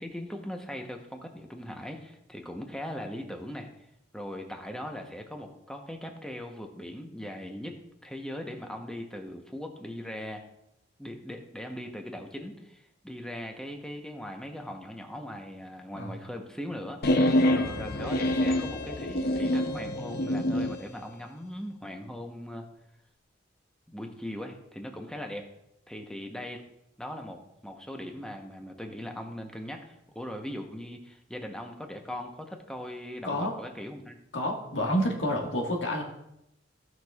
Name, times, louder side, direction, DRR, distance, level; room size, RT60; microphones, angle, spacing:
voice 1, 0.0-3.7 4.1-10.4 11.0-22.7 23.9-25.5 25.9-26.6 27.0-34.2, equal, 5° left, 3 dB, 0.9 m, -39 dB
sound 1, 17.0-20.8, left 1 dB, 55° left, 0.7 m, -26 dB
voice 2, 34.3-36.0, equal, 90° left, 0 dB, 1.6 m, -29 dB
16.0 x 6.1 x 2.4 m, 0.84 s
head